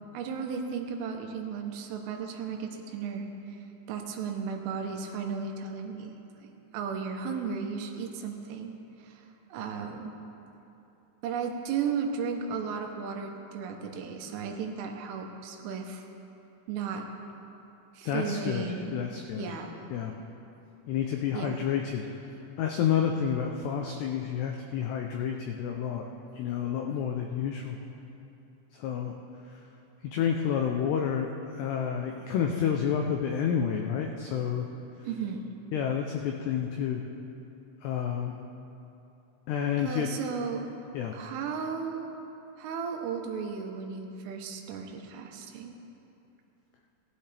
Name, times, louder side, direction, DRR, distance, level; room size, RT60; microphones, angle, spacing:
voice 1, 0.1-3.6 3.9-6.1 6.4-8.7 9.0-9.2 9.5-10.1 11.2-16.1 16.7-17.1 18.0-19.0 19.4-19.8 21.3-21.6 35.1-35.5 39.8-40.7 41.1-42.2 42.6-45.7, right 6 dB, 85° right, 3 dB, 3.6 m, -35 dB
voice 2, 18.1-18.6 18.9-19.5 19.9-20.1 20.9-22.1 22.6-26.1 26.4-27.8 28.8-29.1 30.0-31.3 31.6-34.7 35.7-37.0 37.8-38.4 39.5-40.1 40.9-41.2, left 8 dB, 90° left, 2 dB, 2.3 m, -29 dB
18.5 x 12.5 x 3.4 m, 2.9 s
omnidirectional pair, 5.6 m